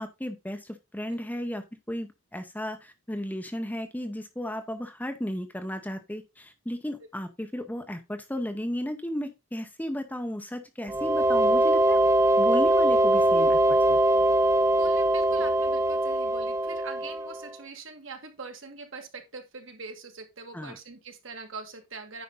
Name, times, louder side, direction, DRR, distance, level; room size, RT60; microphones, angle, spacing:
voice 1, 0.0-12.0 12.4-13.6 13.9-14.3 20.5-20.8, equal, 10° left, 7 dB, 0.7 m, -34 dB
sound 1, 10.9-17.5, right 1 dB, 15° right, 0.4 m, -22 dB
voice 2, 14.8-22.2, right 4 dB, 60° right, 5 dB, 1.8 m, -42 dB
9.6 x 5.0 x 3.9 m, 0.24 s
head